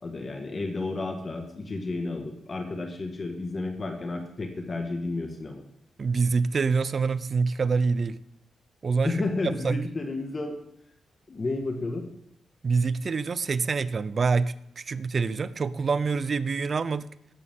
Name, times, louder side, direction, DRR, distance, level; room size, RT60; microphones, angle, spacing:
voice 1, 0.0-5.6 9.0-10.6 11.3-12.1, left 3 dB, 40° left, 4 dB, 1.7 m, -31 dB
voice 2, 6.0-8.2 8.8-9.8 12.6-17.1, right 4 dB, 45° right, 16 dB, 0.6 m, -26 dB
18.0 x 8.4 x 3.7 m, 0.74 s
cardioid pair, 80°, 0 cm